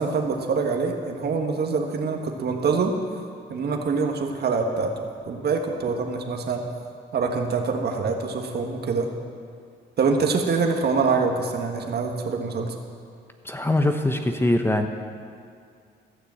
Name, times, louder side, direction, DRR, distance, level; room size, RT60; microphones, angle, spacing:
voice 1, 0.0-3.0 3.5-4.9 5.2-6.6 7.1-9.1 10.0-12.7, right 4 dB, 55° right, 3 dB, 1.5 m, -25 dB
voice 2, 13.4-14.9, left 1 dB, 10° left, 5 dB, 0.9 m, -22 dB
14.5 x 6.8 x 7.7 m, 2.2 s
cardioid pair, 90°, 20 cm